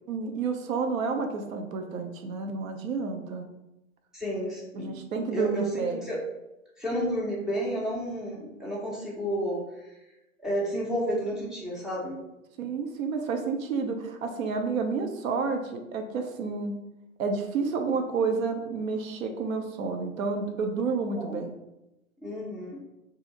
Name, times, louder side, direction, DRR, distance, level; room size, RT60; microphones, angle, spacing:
voice 1, 0.1-3.5 4.7-6.1 12.6-16.7 17.2-21.5, right 4 dB, 75° right, 5 dB, 0.6 m, -30 dB
voice 2, 4.1-4.9 5.3-6.2 6.8-9.6 10.4-12.2 21.2-21.4 22.2-22.8, equal, ahead, -5 dB, 0.4 m, -31 dB
2.7 x 2.5 x 3.8 m, 0.94 s
hypercardioid pair, 110°, 41 cm